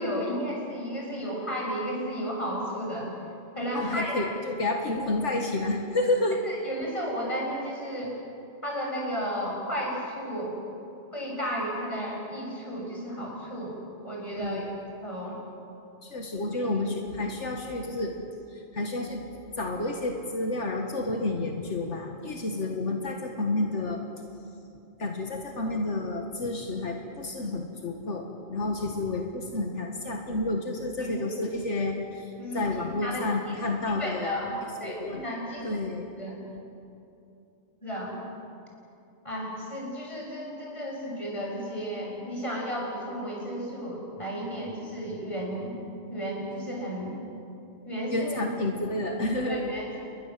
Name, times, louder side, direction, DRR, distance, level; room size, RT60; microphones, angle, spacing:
voice 1, 0.0-3.1 3.5-4.2 6.4-8.1 8.6-10.6 11.1-14.7 15.0-15.4 31.0-31.4 32.4-32.6 33.0-33.5 33.9-36.4 37.8-38.2 39.2-45.8 46.1-47.1 47.8-48.4 49.5-49.9, equal, 25° left, -2 dB, 7.3 m, -33 dB
voice 2, 3.7-6.4 14.3-14.7 16.0-18.1 18.5-19.2 19.6-24.0 25.0-28.3 28.5-34.4 34.8-35.2 35.6-36.1 48.1-49.7, left 2 dB, 85° left, 2 dB, 2.1 m, -30 dB
29.0 x 21.5 x 7.6 m, 2.7 s
omnidirectional pair, 1.2 m